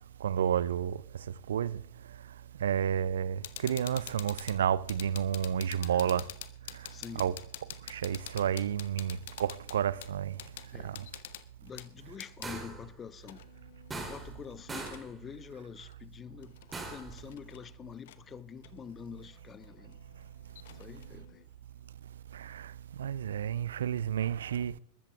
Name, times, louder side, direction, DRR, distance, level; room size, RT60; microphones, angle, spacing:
voice 1, 0.2-1.0 1.5-1.8 2.6-6.2 7.2-7.4 7.9-10.3 23.0-24.7, right 9 dB, 65° right, 0.4 m, -30 dB
sound 1, 3.4-12.5 13.2-15.0 15.9-16.0 16.4-17.7 18.1-18.2 18.6-21.5, left 14 dB, 55° left, 0.8 m, -47 dB
voice 2, 6.9-7.3 10.7-11.0 11.6-13.4 13.9-16.5 16.9-19.9 20.8-21.2, left 7 dB, 20° left, 0.6 m, -46 dB
sound 2, 12.4-12.9 13.9-14.4 14.7-15.1 16.7-17.2, right 3 dB, 15° right, 3.0 m, -40 dB
21.5 x 13.5 x 3.5 m
figure-of-eight pair, 90°, 0 cm